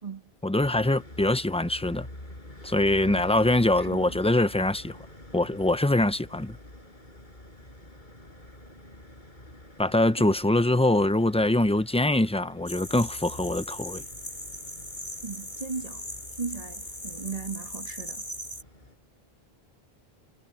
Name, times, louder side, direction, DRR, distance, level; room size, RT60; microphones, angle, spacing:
voice 1, 0.4-2.1 2.6-5.0 5.3-6.6 9.8-14.0, left 1 dB, 10° left, 0.5 m, -23 dB
sound 1, 0.6-18.9, left 1 dB, 50° left, 6.5 m, -47 dB
voice 2, 3.1-4.2 10.2-10.3 15.2-18.3, right 5 dB, 40° right, 1.7 m, -38 dB
sound 2, 12.7-18.6, left 1 dB, 30° left, 3.1 m, -39 dB
omnidirectional pair, 1.0 m